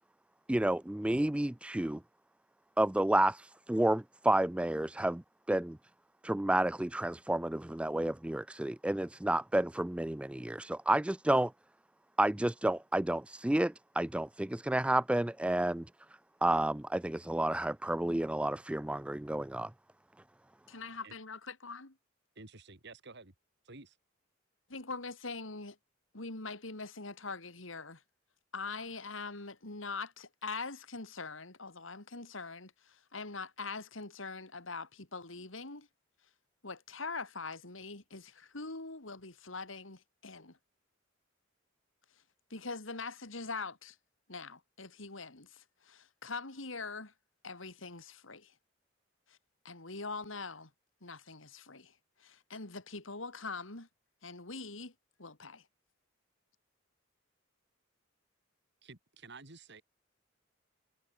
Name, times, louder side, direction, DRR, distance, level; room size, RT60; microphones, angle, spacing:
voice 1, 0.5-2.0 2.8-5.2 5.5-5.8 6.2-11.5 12.2-15.9 16.4-19.7, right 1 dB, 5° right, 0.3 m, -30 dB
voice 2, 20.7-22.0 24.7-25.8 26.1-28.0 28.5-35.9 36.6-40.6 42.5-44.0 44.3-47.1 47.4-48.5 49.3-49.4 49.6-50.7 51.0-51.9 52.2-53.9 54.2-54.9 55.2-55.6, left 4 dB, 75° left, 3.1 m, -43 dB
voice 3, 22.4-23.3 23.7-24.0 58.8-59.8, right 3 dB, 60° right, 3.4 m, -51 dB
head